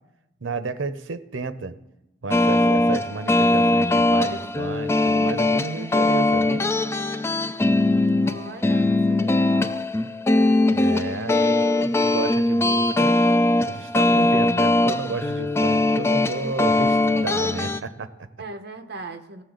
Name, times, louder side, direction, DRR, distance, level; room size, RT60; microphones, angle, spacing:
voice 1, 0.4-1.8 2.2-6.7 10.7-13.2 13.7-18.3, right 3 dB, 90° right, 12 dB, 0.7 m, -32 dB
sound 1, 2.3-17.8, left 2 dB, 15° left, 0.3 m, -20 dB
voice 2, 8.2-9.9 18.4-19.4, right 3 dB, 55° right, 6 dB, 0.9 m, -39 dB
16.5 x 7.0 x 3.9 m, 0.91 s
head